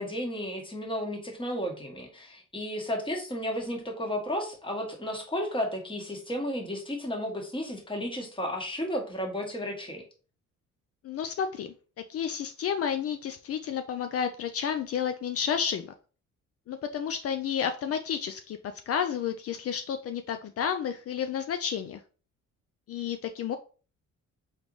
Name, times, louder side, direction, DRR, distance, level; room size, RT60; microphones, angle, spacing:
voice 1, 0.0-10.0, equal, 15° left, 1 dB, 1.5 m, -33 dB
voice 2, 11.0-11.7 12.1-15.9 16.7-18.6 18.9-22.0 22.9-23.6, left 8 dB, 50° left, 8 dB, 0.4 m, -31 dB
4.0 x 3.4 x 3.1 m, 0.37 s
cardioid pair, 90°, 30 cm